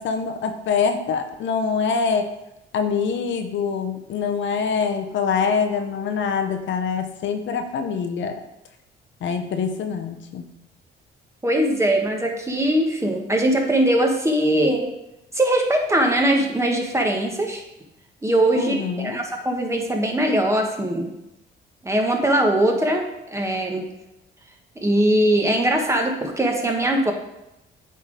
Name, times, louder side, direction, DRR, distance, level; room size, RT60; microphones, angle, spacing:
voice 1, 0.0-2.3 2.7-8.4 9.2-10.5 18.6-19.2, left 6 dB, 70° left, 6 dB, 0.7 m, -24 dB
voice 2, 11.4-14.9 15.3-17.6 18.2-21.1 21.8-23.8 24.8-27.1, right 1 dB, 15° right, 2 dB, 1.2 m, -21 dB
8.3 x 3.8 x 3.9 m, 0.89 s
cardioid pair, 90°, 20 cm